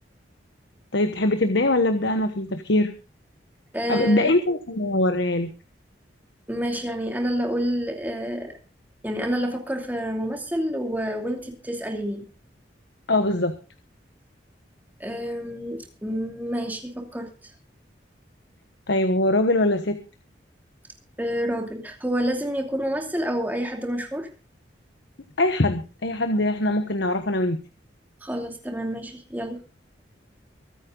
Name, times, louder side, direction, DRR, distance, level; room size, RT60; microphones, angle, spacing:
voice 1, 0.9-2.9 3.9-5.5 13.1-13.5 18.9-20.0 25.4-27.6, left 1 dB, 75° left, 8 dB, 1.3 m, -22 dB
voice 2, 3.7-4.3 6.5-8.5 9.0-12.2 15.0-17.5 21.2-24.3 28.2-29.6, equal, 10° right, 3 dB, 2.7 m, -28 dB
24.0 x 9.3 x 3.9 m, 0.33 s
head